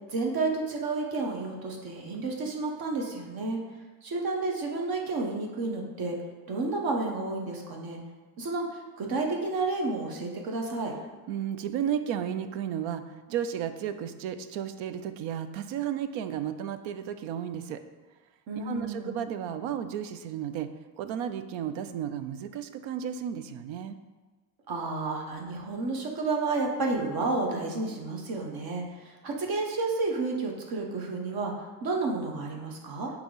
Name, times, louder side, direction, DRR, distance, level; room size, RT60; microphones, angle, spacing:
voice 1, 0.1-3.6 4.0-6.2 6.5-8.0 8.4-8.7 9.0-10.9 18.5-19.1 24.7-28.8 29.2-31.5 31.8-33.1, right 3 dB, 50° right, 1 dB, 1.2 m, -31 dB
voice 2, 11.3-17.8 18.5-20.7 21.0-24.0, right 9 dB, 80° right, 10 dB, 0.6 m, -33 dB
8.3 x 3.1 x 3.9 m, 1.3 s
cardioid pair, 125°, 46 cm